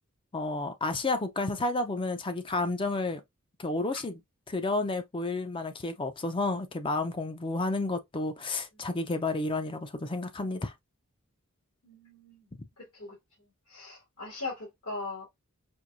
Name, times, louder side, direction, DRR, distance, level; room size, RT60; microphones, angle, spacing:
voice 1, 0.3-3.2 3.6-4.2 4.5-10.7, left 2 dB, 25° left, 0.5 m, -31 dB
voice 2, 11.8-12.5 12.8-13.1 13.7-15.2, left 3 dB, 70° left, 2.2 m, -40 dB
4.4 x 2.6 x 2.5 m
head